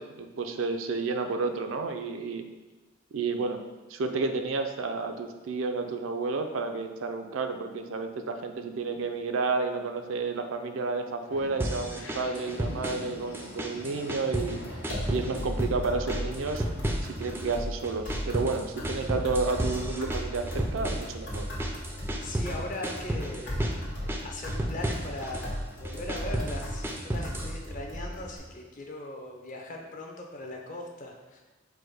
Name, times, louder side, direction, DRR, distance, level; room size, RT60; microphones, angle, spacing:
voice 1, 0.0-2.4 3.1-3.6 3.9-14.6 15.1-16.6 17.0-21.5, right 4 dB, 80° right, 6 dB, 0.4 m, -31 dB
sound 1, 11.3-16.7, left 2 dB, 85° left, 0.6 m, -45 dB
sound 2, 11.6-13.1 13.3-14.6 14.8-15.8 16.1-17.6 17.8-22.6 22.8-23.8 24.1-25.5 25.8-27.5, right 1 dB, 10° right, 0.3 m, -32 dB
sound 3, 14.4-28.4, equal, 65° left, 1.3 m, -36 dB
voice 2, 22.2-23.6 24.0-31.4, left 1 dB, 40° left, 1 dB, 0.6 m, -39 dB
4.7 x 2.1 x 4.7 m, 1.2 s
head